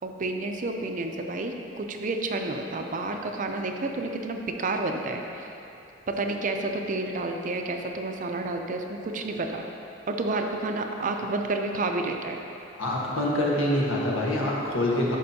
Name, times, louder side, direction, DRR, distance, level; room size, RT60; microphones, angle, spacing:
voice 1, 0.0-5.5 6.1-9.7 10.1-12.4, right 2 dB, 40° right, 4 dB, 0.5 m, -30 dB
voice 2, 12.8-15.2, left 1 dB, 90° left, -4 dB, 1.4 m, -25 dB
11.0 x 5.9 x 2.8 m, 2.8 s
head